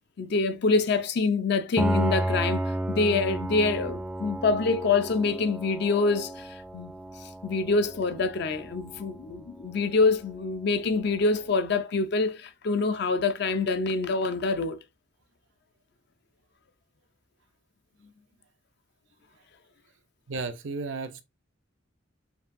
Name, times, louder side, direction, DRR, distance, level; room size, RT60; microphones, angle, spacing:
voice 1, 0.2-6.5 6.7-6.9 7.4-14.8, left 3 dB, 60° left, 0.5 m, -26 dB
Piano, 1.8-11.3, right 1 dB, 5° right, 0.3 m, -33 dB
voice 2, 20.3-21.2, right 3 dB, 75° right, 0.6 m, -33 dB
5.3 x 2.5 x 2.6 m
head